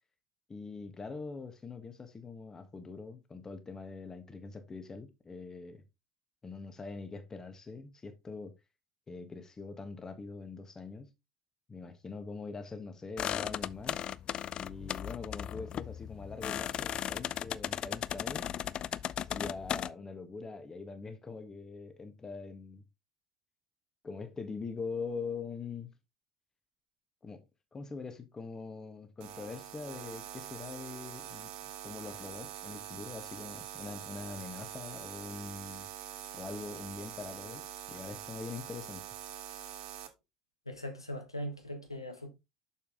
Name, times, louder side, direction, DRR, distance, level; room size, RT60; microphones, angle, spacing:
voice 1, 0.5-5.8 6.4-8.5 9.1-11.1 11.7-14.0 14.5-18.5 19.2-22.8 24.0-25.9 27.2-27.4 27.7-31.5 31.8-35.9 36.3-39.0, left 4 dB, 20° left, 1.4 m, -43 dB
sound 1, 13.2-19.9, left 10 dB, 40° left, 0.3 m, -36 dB
sound 2, 29.2-40.1, right 10 dB, 55° right, 1.2 m, -44 dB
voice 2, 40.7-42.3, equal, 85° left, 1.3 m, -40 dB
6.8 x 5.7 x 3.7 m
figure-of-eight pair, 65°, 2 cm